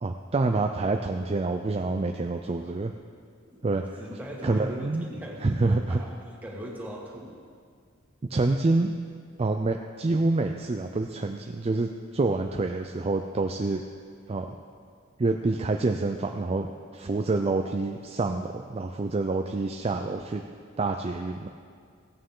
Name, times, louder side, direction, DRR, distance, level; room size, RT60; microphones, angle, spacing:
voice 1, 0.0-2.9 3.6-3.8 4.4-5.0 5.4-6.0 8.3-9.0 9.4-13.8 14.3-14.6 15.2-16.7 16.9-20.4 20.8-21.5, right 3 dB, 30° right, 4 dB, 0.4 m, -27 dB
voice 2, 4.0-6.1 6.4-7.3, equal, 10° right, -5 dB, 2.2 m, -39 dB
16.5 x 8.9 x 3.8 m, 2.1 s
head